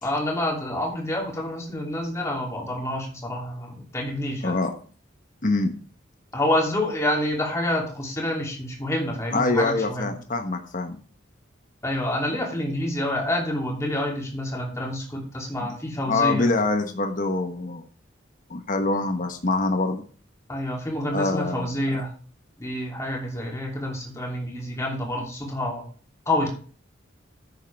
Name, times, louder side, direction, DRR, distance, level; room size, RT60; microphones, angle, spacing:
voice 1, 0.0-4.5 6.3-10.2 11.8-16.5 20.5-22.1 22.6-25.8 26.3-26.5, left 1 dB, 15° left, -1 dB, 2.9 m, -28 dB
voice 2, 5.4-5.8 9.3-11.0 15.6-15.7 16.0-17.8 18.5-20.0 21.1-21.8, left 3 dB, 45° left, 5 dB, 1.2 m, -25 dB
10.0 x 8.3 x 3.5 m, 0.41 s
head